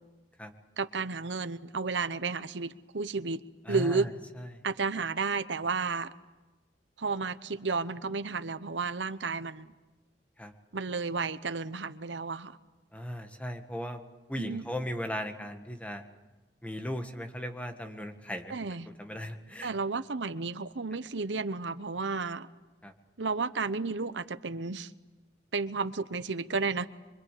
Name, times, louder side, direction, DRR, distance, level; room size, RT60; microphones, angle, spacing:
voice 1, 0.8-4.1 4.6-6.1 7.0-9.7 10.7-12.6 14.4-14.6 18.5-18.9 19.6-22.5 23.2-24.9 25.5-26.9, right 4 dB, 85° right, 0.9 m, -32 dB
voice 2, 3.7-4.1 4.4-4.5 10.4-10.5 12.9-14.0 14.3-16.0 16.6-18.6 18.9-19.7 22.8-22.9, equal, 10° left, 1.7 m, -37 dB
25.0 x 24.5 x 8.5 m
head